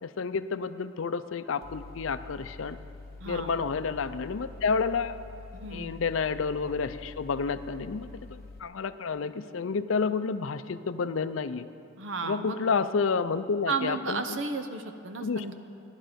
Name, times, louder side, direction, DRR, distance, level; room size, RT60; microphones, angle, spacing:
voice 1, 0.0-2.8 3.3-5.2 5.7-11.6 12.2-14.4 15.2-15.4, left 5 dB, 75° left, 12 dB, 0.5 m, -30 dB
Mechanical fan, 1.6-8.6, left 3 dB, 50° left, 0.9 m, -46 dB
voice 2, 3.2-3.5 5.5-5.9 12.0-12.6 13.7-15.5, right 4 dB, 65° right, 8 dB, 0.9 m, -33 dB
16.0 x 11.0 x 5.2 m, 2.5 s
head